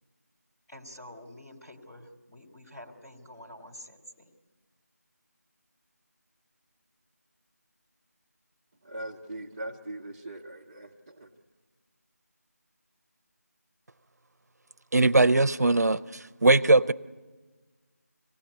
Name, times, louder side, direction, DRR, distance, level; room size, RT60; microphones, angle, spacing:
voice 1, 0.7-4.3, left 1 dB, 10° left, 1.7 m, -48 dB
voice 2, 8.8-11.4, right 1 dB, 15° right, 0.7 m, -41 dB
voice 3, 14.9-16.9, right 2 dB, 70° right, 0.6 m, -21 dB
25.0 x 17.0 x 9.4 m
figure-of-eight pair, 170°, 9 cm